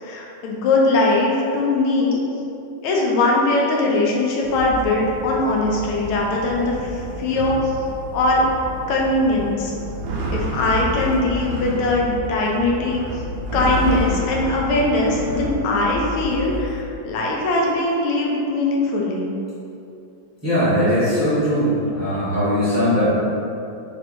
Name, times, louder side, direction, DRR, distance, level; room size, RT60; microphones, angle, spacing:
voice 1, 0.0-2.2 2.8-6.9 7.2-7.6 8.1-8.4 8.9-9.7 10.3-13.0 13.5-19.3, left 2 dB, 85° left, -2 dB, 1.5 m, -20 dB
sound 1, 4.4-16.8, equal, 70° right, 0.9 m, -30 dB
voice 2, 20.4-23.1, equal, 10° right, -14 dB, 0.9 m, -19 dB
4.3 x 3.1 x 2.7 m, 2.7 s
omnidirectional pair, 2.2 m